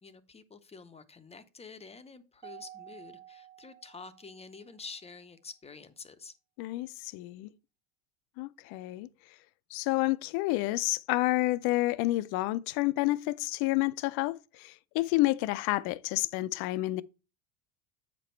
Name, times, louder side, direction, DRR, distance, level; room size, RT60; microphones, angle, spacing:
voice 1, 0.0-6.3, left 4 dB, 15° left, 0.7 m, -48 dB
Mallet percussion, 2.4-4.9, right 12 dB, 65° right, 0.9 m, -51 dB
voice 2, 6.6-7.5 8.4-9.1 9.7-17.0, left 19 dB, 55° left, 0.6 m, -29 dB
7.7 x 5.3 x 4.4 m
supercardioid pair, 115°, 45 cm